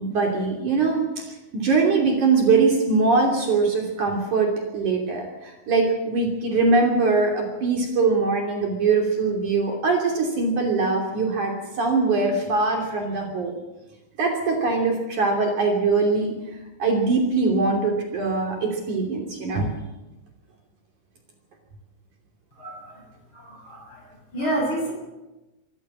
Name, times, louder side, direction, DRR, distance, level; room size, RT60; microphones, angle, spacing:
voice 1, 0.0-13.5 14.2-16.3 16.8-19.7, right 4 dB, 55° right, 1 dB, 4.2 m, -22 dB
voice 2, 22.6-23.0 23.3-24.0 24.3-24.9, right 1 dB, 30° left, 0 dB, 7.7 m, -29 dB
25.0 x 14.5 x 7.5 m, 1.0 s
omnidirectional pair, 4.4 m